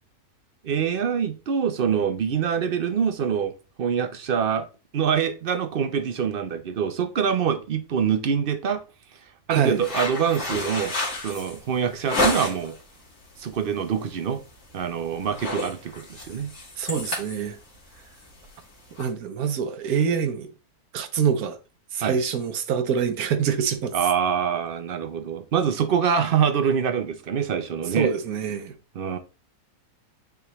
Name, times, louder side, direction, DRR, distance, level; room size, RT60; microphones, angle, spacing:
voice 1, 0.6-3.5 3.8-4.7 4.9-8.8 9.5-10.9 11.2-12.7 13.4-14.4 14.7-16.5 22.0-22.2 23.9-28.1 29.0-29.2, right 7 dB, 55° right, 0.6 m, -25 dB
voice 2, 9.5-9.8 16.8-17.6 19.0-20.5 20.9-21.6 21.9-23.9 28.0-28.7, right 7 dB, 75° right, 1.3 m, -25 dB
sound 1, 9.8-12.8 13.2-13.6 13.9-14.1 14.5-14.9 15.1-19.0, left 2 dB, 55° left, 2.2 m, -30 dB
9.1 x 3.5 x 3.0 m
omnidirectional pair, 1.6 m